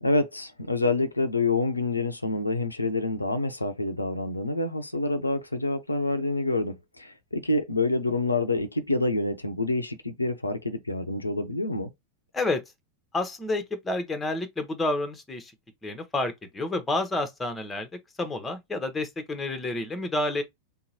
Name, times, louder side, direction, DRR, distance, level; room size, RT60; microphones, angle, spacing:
voice 1, 0.0-11.9, left 2 dB, 85° left, 0.5 m, -27 dB
voice 2, 13.1-15.5 15.8-17.9 18.2-20.4, left 2 dB, 10° left, 0.8 m, -29 dB
3.7 x 2.9 x 2.8 m
figure-of-eight pair, 90°, 0 cm